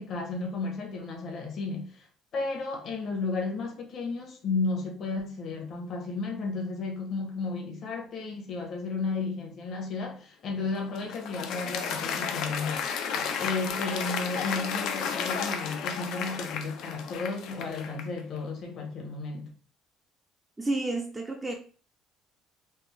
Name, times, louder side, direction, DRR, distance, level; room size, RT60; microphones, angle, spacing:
voice 1, 0.0-2.1 2.3-12.9 13.4-19.5, left 3 dB, 50° left, 1.0 m, -33 dB
Applause, 10.6-18.2, left 6 dB, 70° left, 0.5 m, -33 dB
voice 2, 20.6-21.5, right 2 dB, 15° right, 0.4 m, -30 dB
3.4 x 2.0 x 3.3 m
cardioid pair, 110°, 0 cm